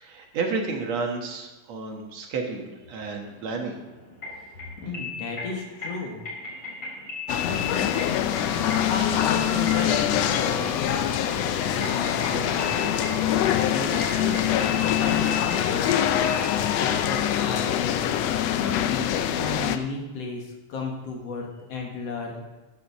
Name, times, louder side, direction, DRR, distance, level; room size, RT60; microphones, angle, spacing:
voice 1, 0.0-3.8 6.5-6.9, right 4 dB, 65° right, 2 dB, 2.4 m, -31 dB
sound 1, 3.3-16.4, left 5 dB, 25° left, 5.1 m, -36 dB
voice 2, 4.8-6.2 7.4-8.2 8.9-12.9 13.5-15.9 16.6-18.1 18.5-22.4, left 3 dB, 60° left, 1 dB, 2.5 m, -34 dB
sound 2, 7.3-19.8, left 11 dB, 75° left, 1.6 m, -24 dB
sound 3, 8.1-17.8, left 1 dB, ahead, 0.4 m, -38 dB
10.0 x 7.2 x 6.9 m, 1.2 s
omnidirectional pair, 3.3 m